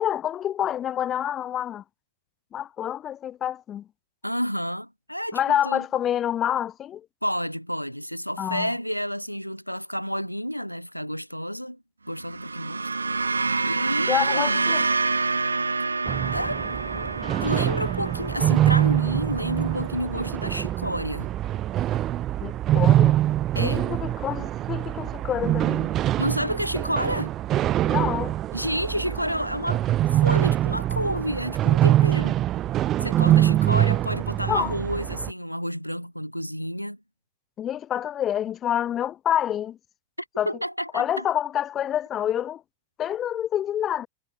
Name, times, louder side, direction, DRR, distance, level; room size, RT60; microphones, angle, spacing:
voice 1, 0.0-1.8 2.5-3.9 5.3-7.0 8.4-8.7 14.1-14.8 22.4-23.1 23.5-25.9 27.8-28.4 34.5-34.7 37.6-39.8 40.4-40.5 40.9-42.6 43.0-44.1, left 10 dB, 30° left, 1.5 m, -27 dB
voice 2, 4.2-5.4 5.6-5.8 7.2-11.8 12.1-14.6 16.3-16.6 16.9-21.3 23.5-23.8 26.2-27.3 28.5-29.8 30.1-32.4 33.0-37.0 40.4-41.3, equal, 90° left, 1.3 m, -30 dB
sound 1, 12.1-20.6, right 3 dB, 80° right, 0.3 m, -28 dB
sound 2, 16.1-35.3, right 13 dB, 30° right, 0.6 m, -24 dB
figure-of-eight pair, 90°, 0 cm